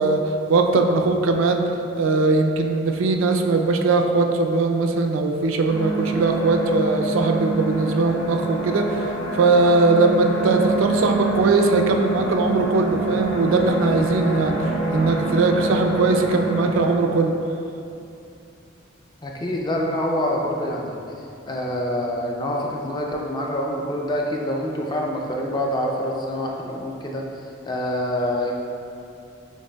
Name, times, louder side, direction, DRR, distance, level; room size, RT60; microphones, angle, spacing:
voice 1, 0.0-1.6 2.0-17.4, right 3 dB, 85° right, 4 dB, 0.4 m, -20 dB
sound 1, 5.7-17.0, right 2 dB, 90° left, 0.9 m, -26 dB
voice 2, 19.2-21.0 21.5-28.5, left 1 dB, 20° left, -1 dB, 0.4 m, -26 dB
6.3 x 3.5 x 2.2 m, 2.6 s
head